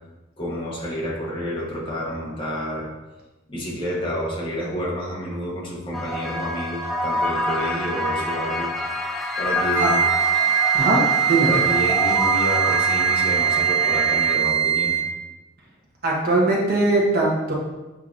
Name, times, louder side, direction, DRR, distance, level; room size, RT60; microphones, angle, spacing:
voice 1, 0.4-2.9 3.5-8.7 9.1-10.1 11.4-15.0, equal, 25° left, -5 dB, 1.1 m, -29 dB
sound 1, 5.9-14.4, left 1 dB, ahead, 0.3 m, -27 dB
Wind instrument woodwind instrument, 9.7-15.1, right 9 dB, 85° right, 0.9 m, -21 dB
voice 2, 10.7-11.5 16.0-17.5, right 2 dB, 50° right, -4 dB, 1.0 m, -20 dB
7.2 x 2.8 x 2.5 m, 1.1 s
head